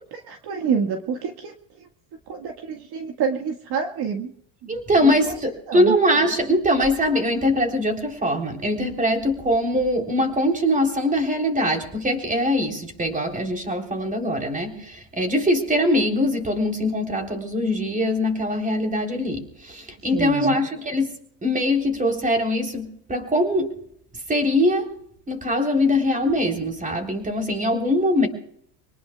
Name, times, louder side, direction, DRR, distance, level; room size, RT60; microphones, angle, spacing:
voice 1, 0.1-1.5 2.3-4.3 4.6-5.3 5.7-5.9 20.1-20.6, right 6 dB, 50° right, 4 dB, 1.8 m, -27 dB
voice 2, 4.7-21.1 21.4-23.7 24.3-24.9 25.3-28.3, left 1 dB, 15° right, 3 dB, 3.6 m, -22 dB
26.5 x 19.0 x 2.3 m, 0.67 s
supercardioid pair, 115°, 49 cm